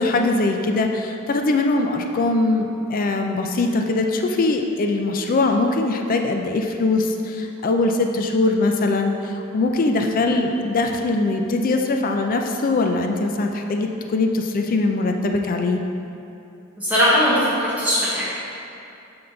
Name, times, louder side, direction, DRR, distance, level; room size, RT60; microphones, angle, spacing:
voice 1, 0.0-15.8, left 2 dB, 40° left, 4 dB, 0.4 m, -21 dB
voice 2, 16.8-18.2, equal, 5° right, -11 dB, 1.0 m, -19 dB
7.7 x 3.8 x 3.8 m, 2.7 s
head